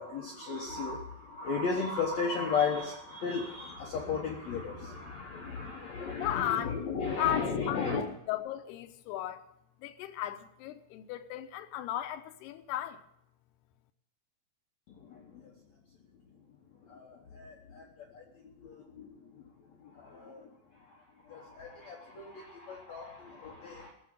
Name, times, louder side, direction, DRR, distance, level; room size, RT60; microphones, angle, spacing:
voice 1, 0.0-8.0 14.9-15.5 16.9-18.2 18.6-19.3 19.8-20.5 21.3-23.9, left 5 dB, 60° left, 1.9 m, -35 dB
voice 2, 6.0-9.4 9.8-13.0, left 12 dB, 85° left, 2.9 m, -35 dB
15.0 x 7.3 x 9.4 m
omnidirectional pair, 4.7 m